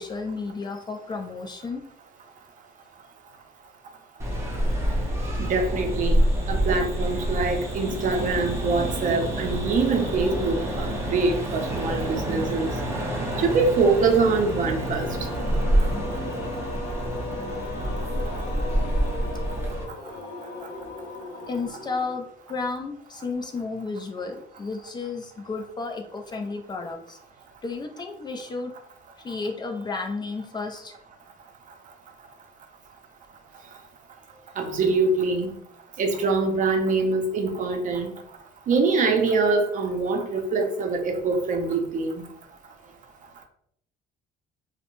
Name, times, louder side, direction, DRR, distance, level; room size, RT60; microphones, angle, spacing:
voice 1, 0.0-1.8 16.3-16.5 21.5-27.2 27.6-28.7 29.2-31.0, left 4 dB, 25° left, 4 dB, 0.3 m, -32 dB
sound 1, 4.2-19.8, right 1 dB, 15° right, 0.8 m, -27 dB
voice 2, 5.4-6.2 6.5-12.7 13.4-15.1 34.6-35.5 36.0-38.1 38.7-42.2, right 4 dB, 50° right, 4 dB, 0.5 m, -24 dB
sound 2, 13.0-22.3, left 3 dB, 75° left, 0.6 m, -37 dB
2.8 x 2.1 x 2.6 m, 0.69 s
cardioid pair, 110°, 17 cm